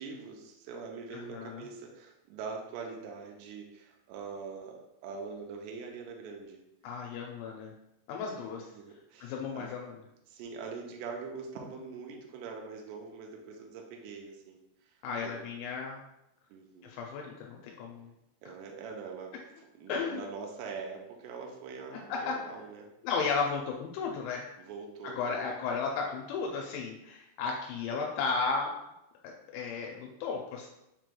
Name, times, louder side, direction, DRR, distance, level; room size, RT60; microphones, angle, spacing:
voice 1, 0.0-6.6 8.1-8.4 8.7-9.7 10.3-15.4 16.5-17.0 18.4-22.9 24.6-25.6 26.2-26.4, right 5 dB, 85° right, 1 dB, 2.6 m, -43 dB
voice 2, 1.3-1.6 6.8-7.7 8.1-8.6 9.2-10.0 15.0-16.0 16.8-18.1 19.9-20.2 22.1-22.4 23.0-24.5 25.2-28.7 29.5-30.7, left 5 dB, 85° left, 0 dB, 2.9 m, -34 dB
7.4 x 3.0 x 2.2 m, 0.85 s
omnidirectional pair, 5.3 m